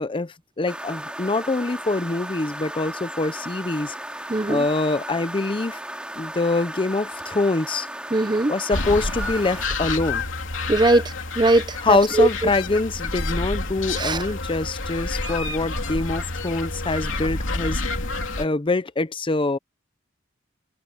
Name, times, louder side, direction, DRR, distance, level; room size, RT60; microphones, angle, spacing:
voice 1, 0.0-3.9 4.5-5.8 6.2-7.9 8.5-10.2 11.8-17.8 18.4-19.6, left 3 dB, 25° left, 0.7 m, -24 dB
sound 1, 0.7-9.7, right 1 dB, 5° right, 3.2 m, -35 dB
voice 2, 4.3-4.6 8.1-8.5 10.7-12.3 14.0-14.2, right 2 dB, 20° right, 0.7 m, -20 dB
sound 2, 8.7-18.4, left 3 dB, 70° left, 3.3 m, -29 dB
head